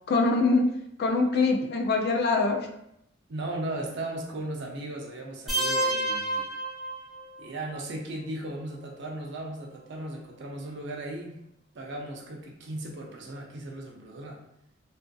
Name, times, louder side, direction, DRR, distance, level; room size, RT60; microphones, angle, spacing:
voice 1, 0.1-0.7 1.0-2.7, left 3 dB, 50° left, 3 dB, 0.3 m, -23 dB
voice 2, 3.3-6.5 7.4-11.4 11.7-14.4, right 1 dB, 60° right, 1 dB, 0.5 m, -36 dB
sound 1, 5.5-7.4, right 1 dB, ahead, 0.6 m, -29 dB
2.4 x 2.4 x 2.2 m, 0.79 s
head